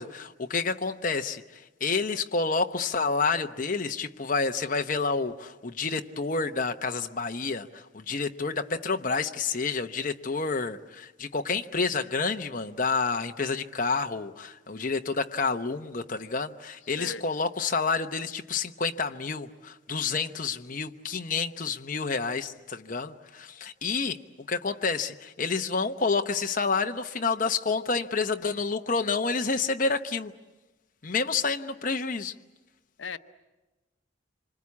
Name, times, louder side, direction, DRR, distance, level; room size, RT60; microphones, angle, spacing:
voice 1, 0.0-24.2 24.5-30.3 31.0-32.3, left 4 dB, 45° left, 0.9 m, -29 dB
voice 2, 16.8-17.2 33.0-33.2, left 4 dB, 85° left, 0.9 m, -37 dB
27.0 x 25.5 x 8.5 m
head